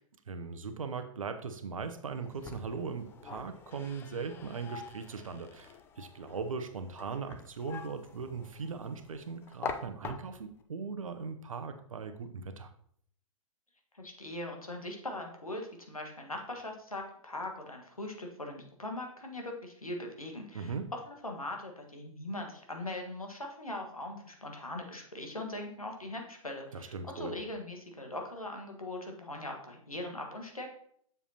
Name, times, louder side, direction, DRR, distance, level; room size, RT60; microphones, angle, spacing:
voice 1, 0.3-12.7 20.5-20.9 26.7-27.4, right 5 dB, 70° right, 9 dB, 0.8 m, -39 dB
sound 1, 2.1-10.6, left 6 dB, 15° left, 0.3 m, -45 dB
voice 2, 13.9-20.8 21.1-30.7, left 1 dB, 90° left, 2 dB, 1.4 m, -41 dB
7.4 x 6.8 x 2.8 m, 0.64 s
figure-of-eight pair, 115°, 18 cm